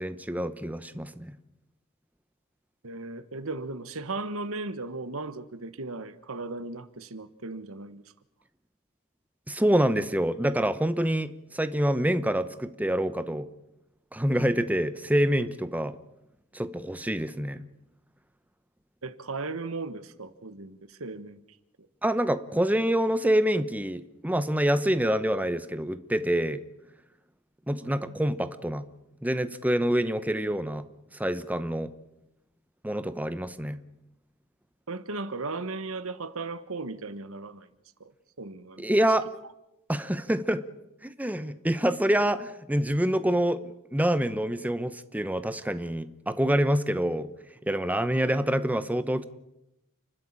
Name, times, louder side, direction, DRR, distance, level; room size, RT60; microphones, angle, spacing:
voice 1, 0.0-1.3 9.5-13.5 14.1-16.0 16.5-17.6 22.0-26.6 27.7-28.8 29.2-30.8 31.1-31.9 32.8-33.8 38.8-39.3 39.9-40.6 41.0-47.3 47.7-49.3, right 1 dB, 5° right, 12 dB, 0.9 m, -26 dB
voice 2, 2.8-8.0 19.0-21.4 27.8-28.2 34.9-37.7 38.0-38.1 38.4-38.8, right 3 dB, 70° right, 13 dB, 1.4 m, -36 dB
30.0 x 12.5 x 8.8 m, 0.87 s
head